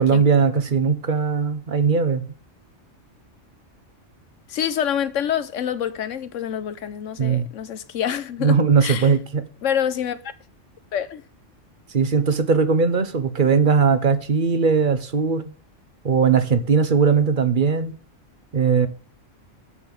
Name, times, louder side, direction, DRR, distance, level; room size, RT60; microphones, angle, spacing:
voice 1, 0.0-2.2 7.2-7.5 8.4-9.4 11.9-15.5 16.0-17.9 18.5-18.9, right 5 dB, 45° right, 1.1 m, -19 dB
voice 2, 4.5-9.1 9.6-10.2 10.9-11.2, left 9 dB, 85° left, 1.2 m, -26 dB
7.0 x 6.8 x 7.4 m
omnidirectional pair, 1.3 m